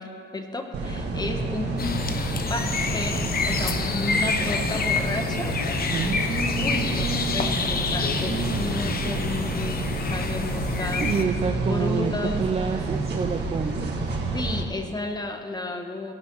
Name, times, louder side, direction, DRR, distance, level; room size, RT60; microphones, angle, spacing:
voice 1, 0.0-2.0 2.5-5.5 6.6-12.4 14.3-16.1, left 2 dB, 20° left, 4 dB, 1.4 m, -32 dB
sound 1, 0.7-14.6, right 3 dB, 60° right, 1.8 m, -29 dB
sound 2, 1.8-11.2, left 5 dB, 50° left, 0.9 m, -28 dB
voice 2, 5.9-7.6 8.1-8.6 11.0-13.9, right 5 dB, 30° right, 5 dB, 0.6 m, -29 dB
17.5 x 5.9 x 5.6 m, 2.2 s
cardioid pair, 90°, 20 cm